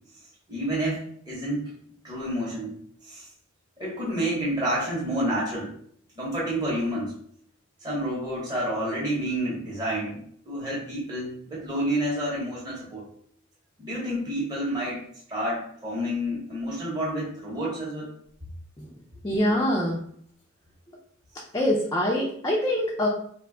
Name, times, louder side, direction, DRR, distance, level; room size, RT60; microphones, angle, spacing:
voice 1, 0.5-1.7 2.0-2.7 3.0-3.3 3.8-5.7 6.2-7.2 7.8-13.1 13.8-15.0 15.3-18.1, right 1 dB, 20° right, -7 dB, 0.8 m, -29 dB
voice 2, 19.2-20.0 21.5-23.1, left 1 dB, 15° left, -3 dB, 0.4 m, -24 dB
2.6 x 2.2 x 3.6 m, 0.64 s
head